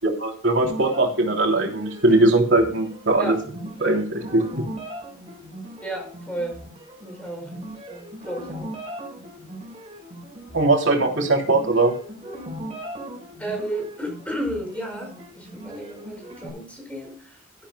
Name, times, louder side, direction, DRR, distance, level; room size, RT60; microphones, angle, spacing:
voice 1, 0.0-3.3 3.8-4.4 10.5-11.9, right 2 dB, 65° right, 2 dB, 3.0 m, -20 dB
sound 1, 0.6-16.5, equal, 30° right, 5.2 m, -39 dB
voice 2, 5.8-6.6 7.0-7.5 7.9-8.7 13.4-17.7, right 1 dB, 5° left, 2 dB, 5.1 m, -33 dB
13.0 x 12.0 x 2.2 m, 0.43 s
head